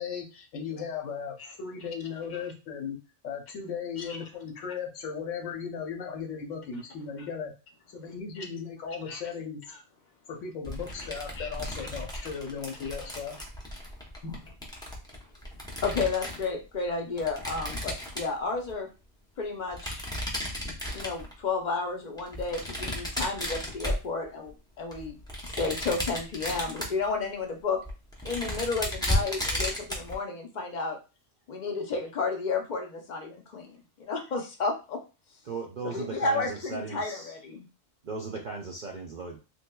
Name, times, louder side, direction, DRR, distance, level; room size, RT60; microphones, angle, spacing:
voice 1, 0.0-3.0 3.2-7.5 7.9-9.6 10.3-13.3 14.2-14.4, left 6 dB, 80° left, 2 dB, 1.1 m, -36 dB
sound 1, 10.6-16.5 17.2-18.7 19.7-21.4 22.2-24.5 24.9-27.1 27.5-27.6 27.8-30.2, left 1 dB, 5° left, 0.4 m, -34 dB
voice 2, 15.8-18.9 19.4-20.0 20.9-25.2 25.4-27.8 28.2-31.0 31.5-35.0 35.8-37.7, left 4 dB, 50° left, 3 dB, 0.6 m, -32 dB
voice 3, 35.5-37.3 38.0-39.4, right 4 dB, 60° right, 0 dB, 0.5 m, -37 dB
3.3 x 3.0 x 2.2 m, 0.31 s
omnidirectional pair, 1.3 m